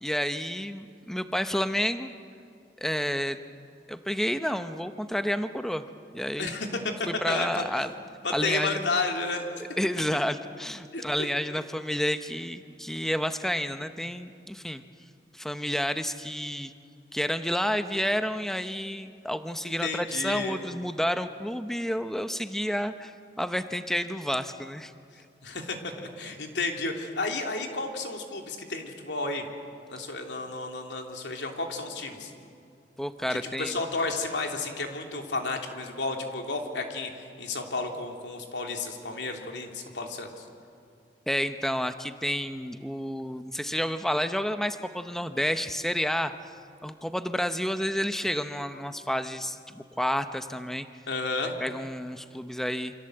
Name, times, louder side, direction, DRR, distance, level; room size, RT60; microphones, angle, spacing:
voice 1, 0.0-2.1 2.8-3.4 3.9-5.8 6.1-6.6 7.1-7.9 8.3-8.8 9.8-14.8 15.3-16.7 17.1-24.9 33.0-33.8 41.3-46.3 46.8-50.9 51.6-52.9, equal, ahead, 9 dB, 0.8 m, -30 dB
voice 2, 7.3-7.8 8.2-9.5 10.9-11.0 19.8-20.6 25.4-29.4 29.9-32.3 33.6-40.3 51.1-51.5, left 3 dB, 90° left, 3 dB, 3.1 m, -32 dB
28.0 x 25.5 x 7.8 m, 2.4 s
head